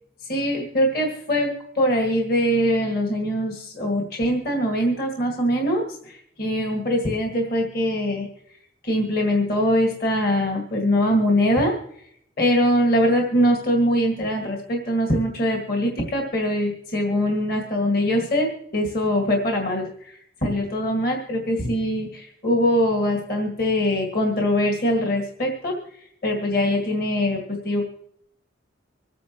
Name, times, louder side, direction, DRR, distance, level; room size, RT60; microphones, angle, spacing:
voice 1, 0.3-8.3 8.8-12.1 12.4-25.8 26.2-27.8, equal, 50° left, 1 dB, 1.9 m, -22 dB
25.5 x 9.3 x 3.0 m, 0.69 s
head